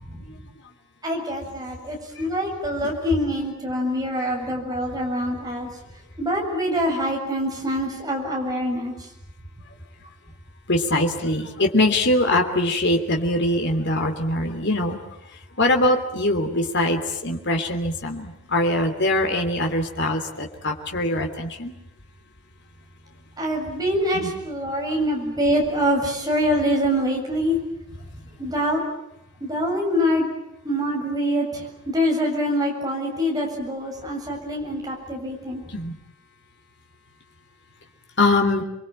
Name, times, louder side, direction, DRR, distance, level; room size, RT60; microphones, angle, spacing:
voice 1, 1.0-5.7 6.2-9.0 23.4-27.6 28.4-28.8 29.4-30.3 30.6-35.6, equal, 15° right, 0 dB, 7.2 m, -25 dB
voice 2, 10.7-15.0 15.6-21.7 24.1-24.3 35.7-35.9 38.2-38.6, left 1 dB, 50° left, 3 dB, 3.2 m, -22 dB
29.0 x 22.5 x 9.1 m, 0.81 s
head